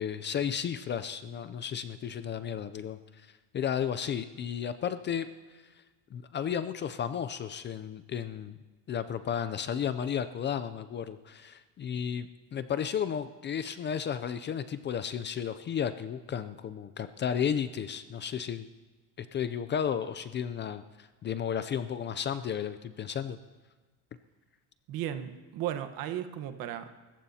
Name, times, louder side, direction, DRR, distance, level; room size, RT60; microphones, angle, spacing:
voice 1, 0.0-5.3 6.1-8.6 8.9-18.7 19.2-23.4, left 8 dB, 30° left, 12 dB, 0.4 m, -33 dB
voice 2, 24.9-27.0, right 11 dB, 60° right, 9 dB, 1.2 m, -35 dB
28.5 x 15.0 x 2.8 m, 1.3 s
cardioid pair, 145°, 39 cm